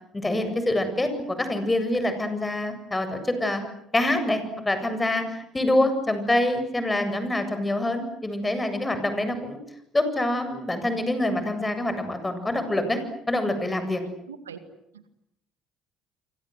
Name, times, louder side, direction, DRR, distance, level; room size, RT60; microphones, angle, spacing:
voice 1, 0.1-3.6 3.9-9.6 9.9-13.0 13.3-14.0, left 1 dB, 15° left, 9 dB, 7.8 m, -25 dB
voice 2, 13.9-14.6 14.9-15.1, right 7 dB, 85° right, 11 dB, 2.1 m, -43 dB
28.5 x 25.5 x 8.0 m, 0.78 s
hypercardioid pair, 55°, 0 cm